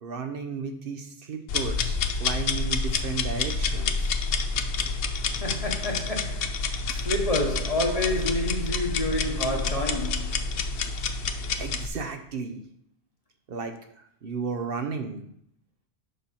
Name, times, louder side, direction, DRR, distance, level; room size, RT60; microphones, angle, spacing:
voice 1, 0.0-4.2 11.6-12.6 13.5-15.2, right 5 dB, 65° right, 0.9 m, -34 dB
sound 1, 1.5-11.9, left 4 dB, 70° left, 0.8 m, -28 dB
voice 2, 5.2-10.4, left 1 dB, 35° left, 1.1 m, -29 dB
6.8 x 4.4 x 5.6 m
omnidirectional pair, 1.1 m